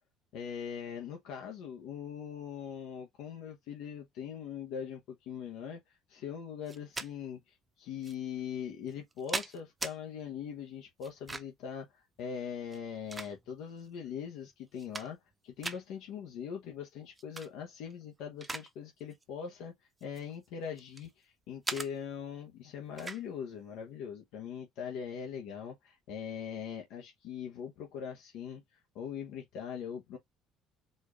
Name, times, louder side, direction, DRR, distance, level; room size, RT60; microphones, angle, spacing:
voice 1, 0.3-15.2 15.4-30.2, left 8 dB, 75° left, 0.9 m, -41 dB
sound 1, 6.7-7.1 8.0-8.1 8.9-10.0 11.0-11.7 12.6-13.7 14.2-14.3 14.7-15.3 15.6-15.8 17.2-17.5 17.9-18.7 19.0-19.2 20.0-21.1 21.6-21.9 23.0-23.2, right 3 dB, 20° right, 0.6 m, -39 dB
4.3 x 2.4 x 2.9 m
supercardioid pair, 95°, 0 cm